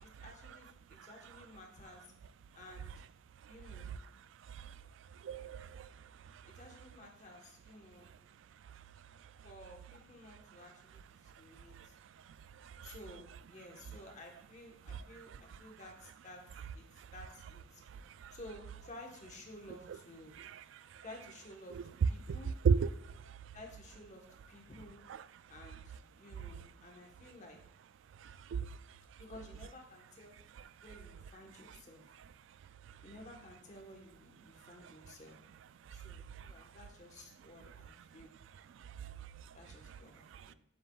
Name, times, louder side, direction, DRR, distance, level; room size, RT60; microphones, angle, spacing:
voice 1, 0.0-2.1 2.5-2.9 3.5-3.9 6.5-8.1 9.4-11.9 12.8-16.4 16.7-17.8 18.3-20.3 21.0-21.8 22.0-22.5 23.5-25.0 25.5-27.6 29.2-30.4 30.8-32.0 33.0-35.4 35.9-38.3 39.5-40.5, left 1 dB, 40° left, 1.2 m, -54 dB
voice 2, 5.2-5.9 12.8-12.9 18.2-18.3 20.4-20.5 22.6-22.9 28.2-28.7 36.4-36.5 39.0-39.1 40.3-40.5, right 6 dB, 90° right, 0.3 m, -32 dB
7.7 x 6.7 x 2.3 m
head